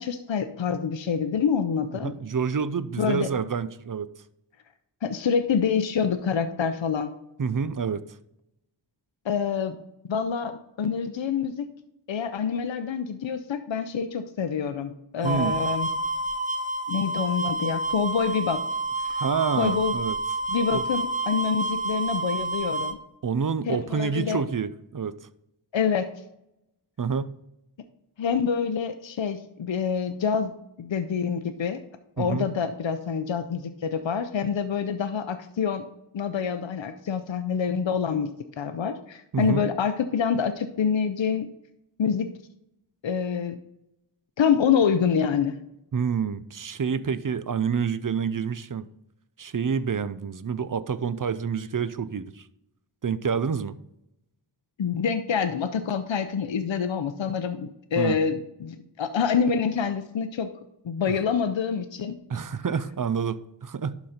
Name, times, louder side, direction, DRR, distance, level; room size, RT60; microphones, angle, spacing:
voice 1, 0.0-2.1 3.0-3.3 5.0-7.1 9.2-9.8 10.1-11.7 12.1-15.9 16.9-18.6 19.0-19.2 19.6-20.0 20.5-23.0 23.7-24.4 25.7-26.1 28.2-31.8 32.2-35.8 36.1-38.3 38.6-41.5 42.0-42.3 43.0-43.6 44.4-45.6 54.8-60.5 60.8-62.2, left 6 dB, 80° left, 9 dB, 0.6 m, -26 dB
voice 2, 2.0-4.1 7.4-8.0 15.2-15.6 19.1-20.2 20.7-20.8 23.2-25.2 27.0-27.3 32.2-32.5 39.3-39.6 45.9-48.9 49.4-52.5 53.0-53.8 58.0-58.2 62.3-64.0, right 6 dB, 45° right, 14 dB, 0.5 m, -28 dB
sound 1, 15.2-22.9, right 2 dB, 15° right, 0.8 m, -29 dB
11.5 x 4.0 x 4.3 m, 0.83 s
wide cardioid pair, 40°, 45 cm